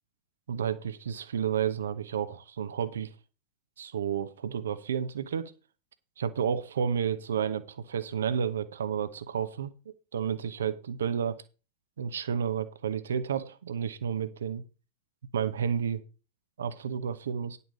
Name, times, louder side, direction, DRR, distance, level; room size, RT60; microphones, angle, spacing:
voice 1, 0.5-3.1 3.8-5.5 6.2-9.7 10.1-11.4 12.0-14.6 15.3-16.0 16.6-17.6, right 8 dB, 65° right, 0.9 m, -31 dB
10.5 x 6.9 x 4.9 m
figure-of-eight pair, 90°, 0 cm